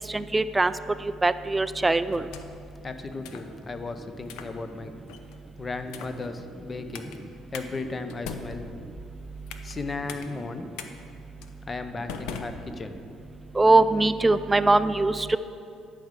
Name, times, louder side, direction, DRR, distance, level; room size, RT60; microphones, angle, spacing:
voice 1, 0.1-0.7 1.2-2.2 13.6-15.4, right 2 dB, 15° right, 13 dB, 0.3 m, -21 dB
sound 1, 2.1-2.7 3.2-3.5 4.2-4.5 5.1-5.4 5.9-6.2 6.9-7.2 7.5-7.7 8.1-9.8 10.1-10.2 10.8-10.9 11.4-11.6 12.1-13.1, left 6 dB, 90° left, 0.6 m, -40 dB
voice 2, 2.8-4.9 5.6-7.1 7.5-8.7 9.6-10.7 11.7-13.0, left 3 dB, 25° left, 8 dB, 0.7 m, -35 dB
11.5 x 5.0 x 6.6 m, 2.5 s
cardioid pair, 105°, 0 cm